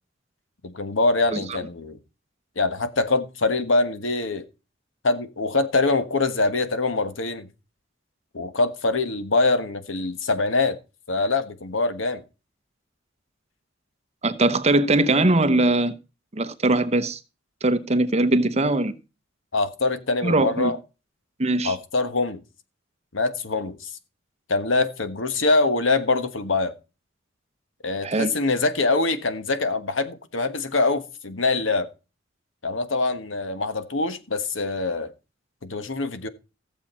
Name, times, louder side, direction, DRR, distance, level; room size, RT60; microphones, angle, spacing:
voice 1, 0.6-2.0 2.6-4.4 5.0-7.5 8.3-10.8 11.1-12.2 19.5-20.8 21.6-22.4 23.1-23.9 24.5-26.7 27.8-31.9 32.6-35.1 35.6-36.3, left 3 dB, 75° left, 1.3 m, -24 dB
voice 2, 14.2-15.9 16.3-17.2 17.6-18.9 20.2-20.7 21.4-21.7 28.0-28.3, right 2 dB, 35° right, 1.0 m, -21 dB
15.0 x 7.5 x 4.3 m
head